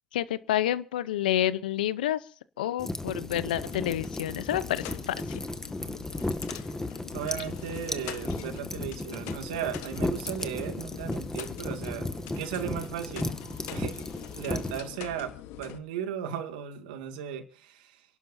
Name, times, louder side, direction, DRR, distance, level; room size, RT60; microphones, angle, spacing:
voice 1, 0.1-2.2 2.6-5.4, left 12 dB, 85° left, 17 dB, 0.7 m, -29 dB
sound 1, 2.8-14.8, left 2 dB, 10° left, 1.8 m, -35 dB
sound 2, 3.6-15.8, left 12 dB, 70° left, 1.2 m, -44 dB
voice 2, 7.1-13.4 13.7-14.0 14.3-18.0, right 9 dB, 80° right, 6 dB, 2.3 m, -36 dB
30.0 x 11.5 x 2.7 m, 0.38 s
hypercardioid pair, 70°, 5 cm